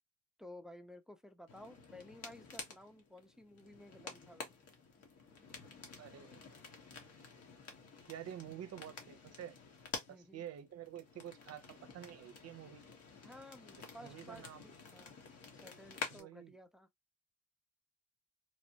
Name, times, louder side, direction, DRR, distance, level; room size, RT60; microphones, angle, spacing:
voice 1, 0.4-4.5 10.1-10.4 13.2-15.1 15.5-16.9, left 1 dB, ahead, 0.6 m, -55 dB
sound 1, 1.5-16.2, left 4 dB, 55° left, 1.2 m, -50 dB
voice 2, 6.0-6.5 8.1-9.5 10.3-12.8 14.0-14.7 16.1-16.5, right 10 dB, 55° right, 0.7 m, -49 dB
3.1 x 2.1 x 2.8 m
cardioid pair, 90°, 30 cm